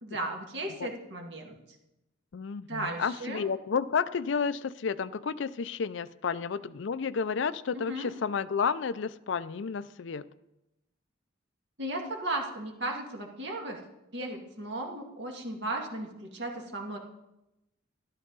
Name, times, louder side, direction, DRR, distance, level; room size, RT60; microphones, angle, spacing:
voice 1, 0.0-1.6 2.7-3.4 7.7-8.1 11.8-13.8 14.1-17.0, right 1 dB, 60° right, 1 dB, 2.0 m, -35 dB
voice 2, 2.3-10.2, left 6 dB, 65° left, 16 dB, 0.4 m, -31 dB
13.0 x 12.0 x 4.0 m, 0.92 s
head